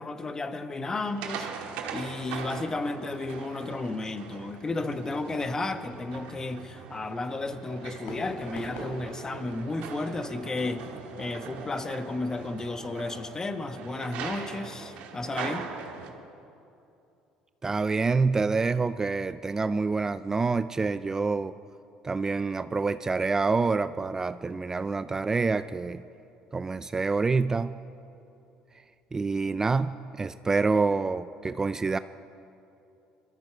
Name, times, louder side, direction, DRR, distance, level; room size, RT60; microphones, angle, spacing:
voice 1, 0.0-1.5 1.9-10.9 11.2-15.7, left 2 dB, 25° left, 9 dB, 1.1 m, -33 dB
sound 1, 1.0-16.1, right 6 dB, 70° right, 1.8 m, -41 dB
Fireworks, 7.6-12.6, left 1 dB, 75° left, 3.5 m, -46 dB
voice 2, 17.6-21.5 22.0-26.0 26.5-27.8 29.1-32.0, right 4 dB, 20° right, 13 dB, 0.4 m, -27 dB
22.0 x 14.0 x 4.7 m, 2.7 s
supercardioid pair, 75°, 2 cm